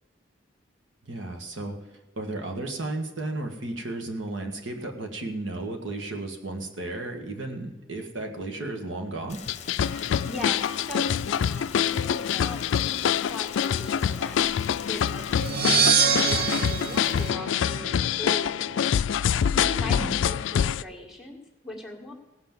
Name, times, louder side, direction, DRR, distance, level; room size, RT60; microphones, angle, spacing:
voice 1, 1.0-1.8 2.2-9.4 19.8-20.1, right 2 dB, 80° right, 3 dB, 1.7 m, -34 dB
Rain, 9.3-17.3, left 6 dB, 35° left, 1.1 m, -44 dB
sound 1, 9.5-20.8, left 8 dB, 80° left, 0.3 m, -25 dB
voice 2, 9.8-17.9 18.2-18.8 19.2-22.1, left 1 dB, ahead, -3 dB, 1.8 m, -40 dB
sound 2, 15.4-18.2, right 7 dB, 50° right, 0.6 m, -25 dB
17.5 x 5.9 x 7.3 m, 1.1 s
head